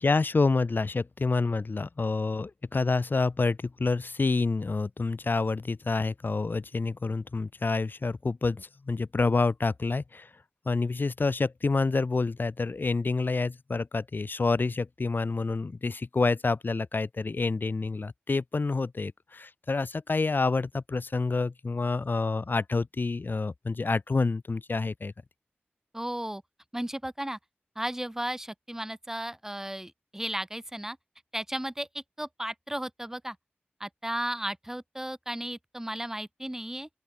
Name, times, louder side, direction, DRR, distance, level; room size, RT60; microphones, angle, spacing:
voice 1, 0.0-10.3 10.7-25.1, left 3 dB, 55° left, 0.9 m, -28 dB
voice 2, 25.9-26.4 26.7-27.4 27.8-31.0 31.3-33.4 33.8-36.9, right 1 dB, 10° right, 2.8 m, -34 dB
open air
wide cardioid pair, 70°, 4 cm